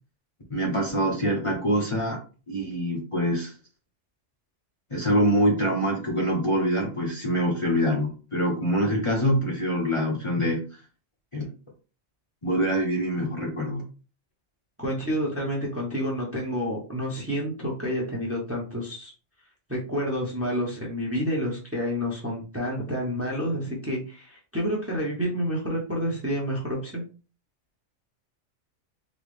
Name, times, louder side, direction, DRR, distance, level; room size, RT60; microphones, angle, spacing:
voice 1, 0.5-2.2 2.5-3.5 4.9-10.6 11.3-11.5 12.4-13.8, equal, 30° left, -2 dB, 0.9 m, -25 dB
voice 2, 14.8-19.1 19.7-27.0, equal, 15° right, -2 dB, 0.9 m, -29 dB
4.0 x 2.3 x 3.2 m, 0.35 s
omnidirectional pair, 1.2 m